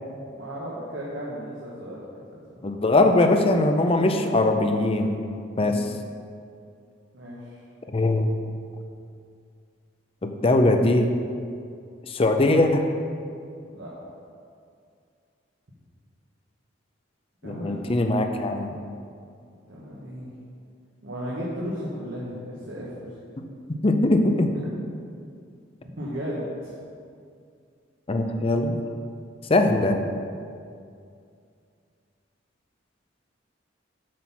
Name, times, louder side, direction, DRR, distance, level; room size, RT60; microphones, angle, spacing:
voice 1, 0.4-2.0 2.3-2.4 5.6-5.9 7.1-7.6 13.7-13.9 17.4-18.1 19.7-20.3 21.0-23.1 26.0-26.7, equal, 70° right, -7 dB, 1.3 m, -35 dB
voice 2, 2.6-5.2 5.6-5.9 7.9-8.3 10.2-11.1 12.1-12.9 17.4-18.8 23.4-23.5 23.8-24.5 28.1-28.8 29.5-30.0, left 2 dB, 30° left, 5 dB, 0.5 m, -21 dB
7.4 x 4.4 x 5.8 m, 2.3 s
head